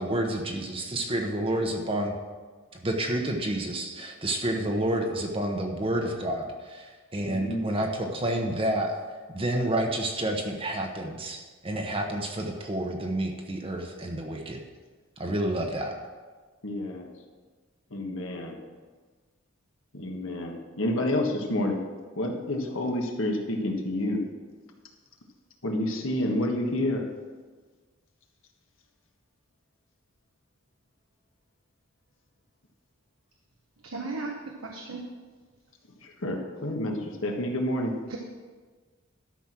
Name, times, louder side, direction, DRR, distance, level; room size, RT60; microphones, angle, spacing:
voice 1, 0.0-2.1 2.8-9.0 9.3-14.6 15.2-16.0, right 1 dB, 25° right, 2 dB, 1.0 m, -29 dB
voice 2, 7.3-7.6 16.6-17.1 17.9-18.6 19.9-21.8 22.2-24.2 25.6-27.1 36.0-38.0, left 1 dB, 70° left, 2 dB, 1.5 m, -29 dB
voice 3, 33.8-34.3 34.6-35.0 38.1-38.2, right 3 dB, 80° right, 1 dB, 1.1 m, -35 dB
12.0 x 6.1 x 6.1 m, 1.4 s
head